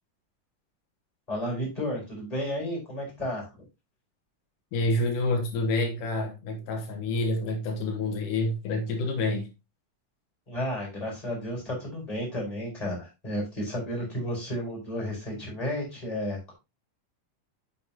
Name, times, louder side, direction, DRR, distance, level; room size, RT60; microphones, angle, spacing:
voice 1, 1.3-3.5 10.5-16.5, equal, 10° left, 4.8 m, -32 dB
voice 2, 4.7-9.5, left 2 dB, 85° left, 2.8 m, -28 dB
8.4 x 7.1 x 2.9 m
omnidirectional pair, 3.6 m